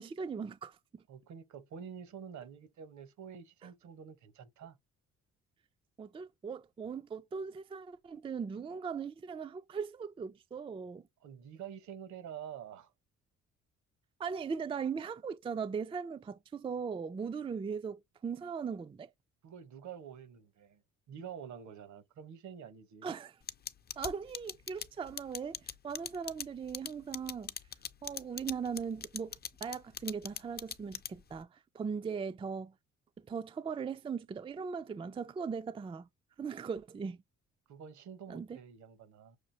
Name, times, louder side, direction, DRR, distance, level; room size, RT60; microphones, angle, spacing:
voice 1, 0.0-1.0 6.0-11.0 14.2-19.1 23.0-23.3 24.0-27.5 28.0-29.3 29.6-32.7 33.2-36.1 36.4-37.2 38.3-38.6, right 6 dB, 20° right, 0.4 m, -39 dB
voice 2, 1.1-4.8 11.2-12.9 19.4-20.8 21.1-23.1 37.7-39.4, right 8 dB, 70° right, 1.0 m, -48 dB
sound 1, 23.5-31.4, left 7 dB, 35° left, 0.5 m, -40 dB
6.4 x 2.4 x 2.7 m
cardioid pair, 90°, 30 cm